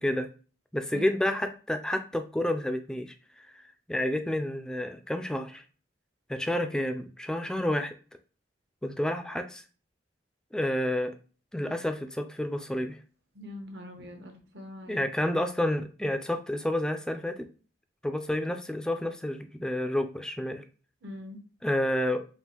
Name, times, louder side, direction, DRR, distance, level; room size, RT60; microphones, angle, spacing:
voice 1, 0.7-3.1 3.5-3.6 3.9-5.6 6.3-7.9 8.8-9.6 10.5-11.1 11.5-13.0 14.9-17.5 18.0-20.6 21.6-22.2, left 1 dB, 5° left, 7 dB, 0.3 m, -29 dB
voice 2, 13.3-15.0 21.0-21.4, left 1 dB, 65° right, 3 dB, 0.9 m, -43 dB
5.4 x 2.5 x 2.9 m, 0.38 s
head